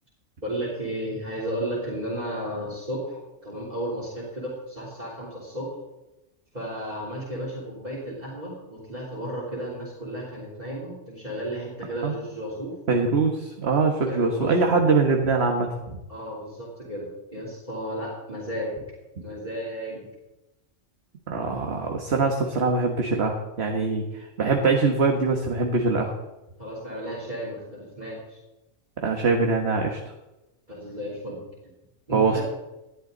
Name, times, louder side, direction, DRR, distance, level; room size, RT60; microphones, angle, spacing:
voice 1, 0.4-5.8 6.5-12.7 14.1-14.5 16.1-18.8 19.2-20.1 26.6-28.4 30.7-31.4 32.1-32.4, equal, 35° right, -5 dB, 3.8 m, -33 dB
voice 2, 12.9-16.0 21.3-26.1 29.0-30.0 32.1-32.4, right 4 dB, 60° right, 3 dB, 1.6 m, -23 dB
18.5 x 12.0 x 4.0 m, 0.99 s
omnidirectional pair, 1.3 m